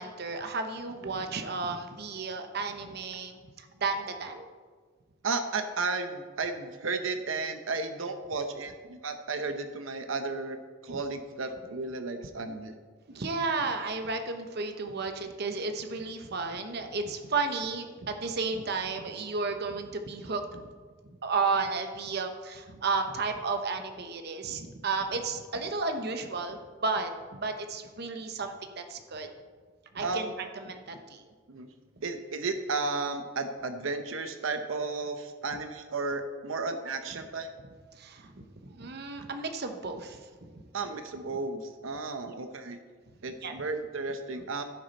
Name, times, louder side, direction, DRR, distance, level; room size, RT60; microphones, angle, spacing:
voice 1, 0.0-4.5 13.1-20.7 21.2-29.3 29.9-31.2 37.9-40.5 42.2-42.3 43.4-43.5, right 4 dB, 55° right, 6 dB, 0.8 m, -33 dB
voice 2, 5.2-10.6 10.8-12.7 30.0-30.3 31.5-31.7 32.0-37.5 40.7-42.8 43.2-44.6, right 3 dB, 85° right, 7 dB, 0.8 m, -33 dB
15.0 x 6.4 x 4.1 m, 1.5 s
head